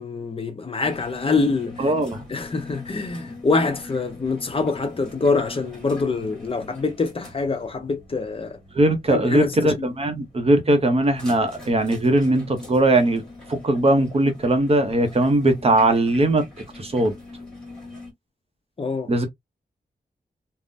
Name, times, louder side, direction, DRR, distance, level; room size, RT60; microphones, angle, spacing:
voice 1, 0.0-1.9 2.3-8.6 9.1-9.9 18.8-19.1, left 4 dB, 35° left, 0.6 m, -25 dB
sound 1, 0.8-18.1, left 2 dB, 5° left, 1.3 m, -42 dB
voice 2, 1.8-2.2 8.7-13.2 13.5-16.4 16.8-17.1 19.1-19.3, right 1 dB, 35° right, 0.7 m, -20 dB
3.6 x 2.0 x 2.5 m
wide cardioid pair, 180°, 17 cm